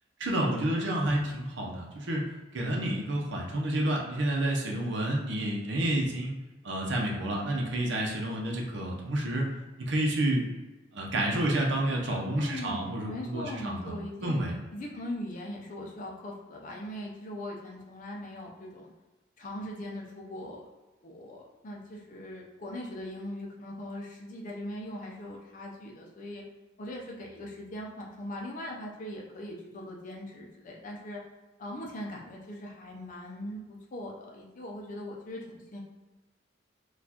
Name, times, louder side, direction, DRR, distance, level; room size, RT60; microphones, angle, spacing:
voice 1, 0.2-2.3 2.5-6.3 6.6-9.5 9.8-10.5 10.9-14.6, right 1 dB, 70° right, -1 dB, 0.7 m, -29 dB
voice 2, 12.4-14.4 14.7-18.9 19.4-20.6 21.0-26.4 26.8-31.2 31.6-35.8, left 1 dB, 45° left, -1 dB, 0.5 m, -40 dB
4.2 x 2.4 x 2.8 m, 1.1 s
head